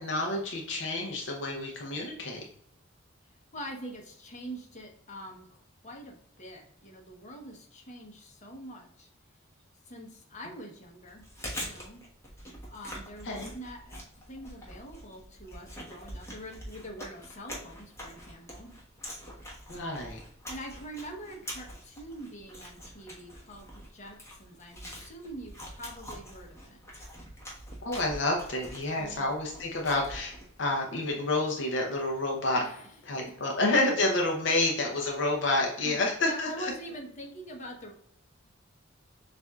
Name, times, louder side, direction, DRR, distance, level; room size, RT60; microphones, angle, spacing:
voice 1, 0.0-2.4 13.2-13.5 19.7-20.2 27.8-32.6 33.0-36.7, left 2 dB, 65° left, 0 dB, 0.7 m, -29 dB
voice 2, 3.5-9.1 9.8-11.2 11.6-12.0 12.7-14.0 14.3-18.7 20.5-26.8 29.0-29.3 32.6-33.0 35.8-37.9, equal, 40° left, 1 dB, 0.9 m, -44 dB
Chewing mastication, 11.1-30.6, equal, 15° left, 1.2 m, -44 dB
7.0 x 2.6 x 2.3 m, 0.71 s
head